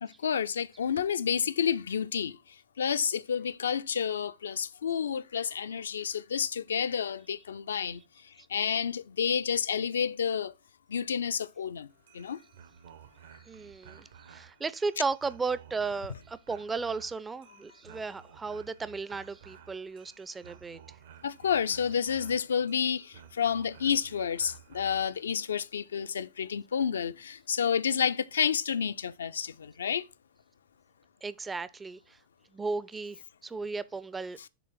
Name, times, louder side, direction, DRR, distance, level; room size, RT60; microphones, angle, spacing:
voice 1, 0.0-10.5 10.9-11.9 12.1-12.4 21.2-30.1, left 7 dB, 70° left, 0.3 m, -30 dB
sound 1, 11.9-25.2, right 9 dB, 60° right, 0.7 m, -54 dB
voice 2, 13.5-20.8 31.2-32.2 32.5-34.4, right 4 dB, 15° right, 0.4 m, -35 dB
6.9 x 3.0 x 5.7 m
figure-of-eight pair, 90°, 0 cm